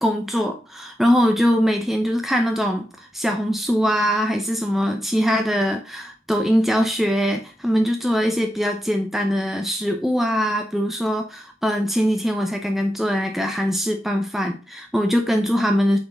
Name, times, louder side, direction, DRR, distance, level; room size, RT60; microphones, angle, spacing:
voice 1, 0.0-16.0, equal, ahead, 0.7 m, -22 dB
8.8 x 4.4 x 3.9 m
head